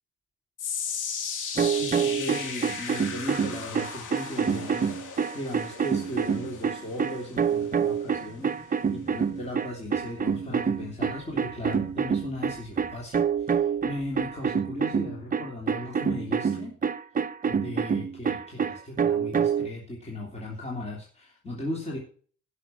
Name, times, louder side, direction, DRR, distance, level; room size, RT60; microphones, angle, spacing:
sound 1, 0.6-12.9 13.2-13.6 14.2-14.3, left 6 dB, 85° left, 2.9 m, -38 dB
voice 1, 1.5-16.8 17.4-22.0, left 1 dB, 20° left, -3 dB, 3.3 m, -37 dB
sound 2, 1.6-19.7, right 6 dB, 30° right, 0.6 m, -27 dB
11.5 x 6.7 x 7.5 m, 0.44 s
wide cardioid pair, 155°, 30 cm